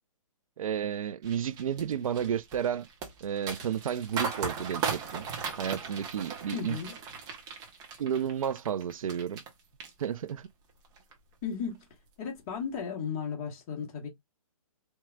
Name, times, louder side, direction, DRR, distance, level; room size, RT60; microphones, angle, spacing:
voice 1, 0.6-2.9 3.2-5.2 5.6-6.8 8.0-9.4 10.0-10.5, right 8 dB, 70° right, 0.5 m, -32 dB
sound 1, 1.2-9.5 9.8-10.4 10.8-11.1, right 5 dB, 20° right, 1.0 m, -37 dB
voice 2, 6.5-6.9 11.4-11.8 12.2-14.1, left 6 dB, 30° left, 1.3 m, -35 dB
4.5 x 2.9 x 2.3 m
hypercardioid pair, 145°, 18 cm